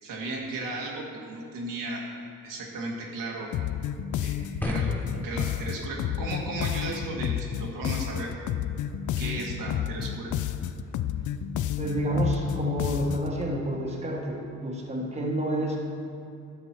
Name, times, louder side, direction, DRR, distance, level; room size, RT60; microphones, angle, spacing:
voice 1, 0.0-2.1 2.4-3.5 4.2-8.3 9.2-10.3, right 2 dB, 90° right, -2 dB, 1.9 m, -35 dB
sound 1, 3.5-13.4, left 10 dB, 65° left, 0.5 m, -31 dB
sound 2, 4.6-10.7, left 1 dB, 5° left, 0.6 m, -40 dB
voice 2, 11.8-15.8, equal, 20° right, -2 dB, 1.4 m, -29 dB
12.0 x 6.8 x 4.5 m, 2.6 s
cardioid pair, 120°, 32 cm